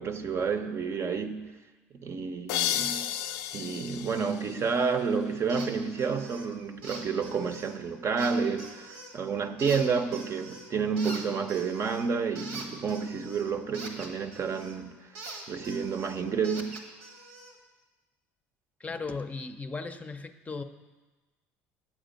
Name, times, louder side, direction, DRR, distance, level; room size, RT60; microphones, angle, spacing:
voice 1, 0.0-1.5 1.9-3.1 3.5-15.0 15.5-16.8, right 5 dB, 45° right, 9 dB, 0.7 m, -30 dB
sound 1, 2.5-5.2, left 11 dB, 75° left, 0.4 m, -33 dB
sound 2, 5.5-5.7 6.0-6.5 6.8-7.7 8.2-9.2 9.6-10.7 11.0-14.8 15.1-17.5, right 3 dB, 90° right, 1.3 m, -44 dB
voice 2, 18.8-20.6, left 4 dB, 20° left, 8 dB, 0.6 m, -36 dB
8.1 x 7.3 x 5.2 m, 1.2 s
hypercardioid pair, 75°, 6 cm